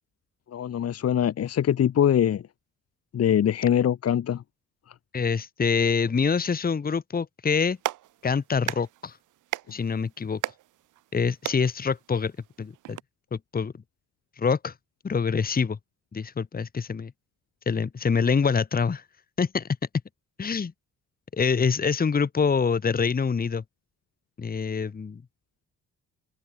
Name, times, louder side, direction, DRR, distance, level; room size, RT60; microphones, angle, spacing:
voice 1, 0.5-2.4 3.1-4.4, left 9 dB, 55° left, 1.4 m, -23 dB
voice 2, 5.1-7.8 8.2-9.2 9.7-10.4 11.1-12.3 12.6-13.0 13.3-13.7 14.4-14.7 15.0-15.8 16.1-17.1 17.6-19.0 19.4-19.7 20.4-20.7 21.3-23.6 24.4-25.2, left 5 dB, 30° left, 1.5 m, -25 dB
Clapping, 7.5-13.0, right 14 dB, 85° right, 4.9 m, -38 dB
open air
cardioid pair, 90°, 30 cm